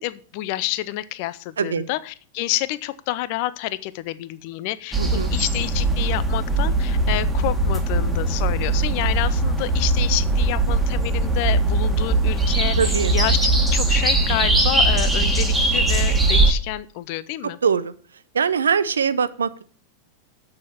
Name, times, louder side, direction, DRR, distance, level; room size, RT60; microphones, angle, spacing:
voice 1, 0.0-17.6, left 17 dB, 45° left, 16 dB, 0.7 m, -29 dB
voice 2, 1.6-1.9 5.0-5.3 12.8-13.2 17.6-17.9 18.3-19.6, right 6 dB, 70° right, 15 dB, 0.7 m, -22 dB
sound 1, 4.9-16.5, right 2 dB, 10° right, 1.7 m, -20 dB
8.4 x 6.6 x 7.0 m, 0.41 s
figure-of-eight pair, 90°, 0 cm